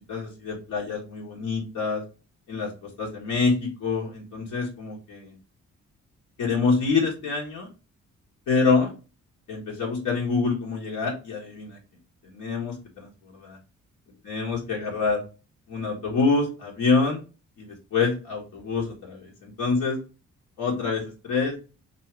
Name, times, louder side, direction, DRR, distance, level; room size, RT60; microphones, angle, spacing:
voice 1, 0.1-2.0 2.5-5.4 6.4-7.7 8.5-8.9 9.5-11.8 12.2-13.6 14.2-15.2 15.7-17.2 17.6-20.0 20.6-21.6, left 4 dB, 85° left, -3 dB, 1.4 m, -26 dB
2.9 x 2.8 x 4.5 m, 0.32 s
cardioid pair, 85°, 31 cm